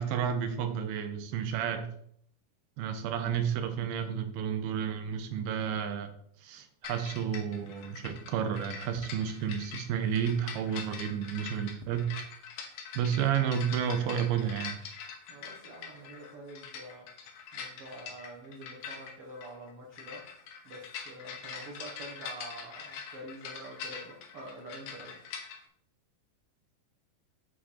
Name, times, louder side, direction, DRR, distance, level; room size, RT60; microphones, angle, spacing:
voice 1, 0.0-1.9 2.8-6.1 6.4-12.2 13.0-14.8, right 8 dB, 90° right, 8 dB, 2.7 m, -31 dB
sound 1, 6.8-25.6, left 6 dB, 70° left, 2.4 m, -44 dB
voice 2, 15.3-17.1 17.5-20.2 20.6-25.2, right 1 dB, 65° right, -2 dB, 1.5 m, -46 dB
7.9 x 5.2 x 4.2 m, 0.66 s
omnidirectional pair, 4.3 m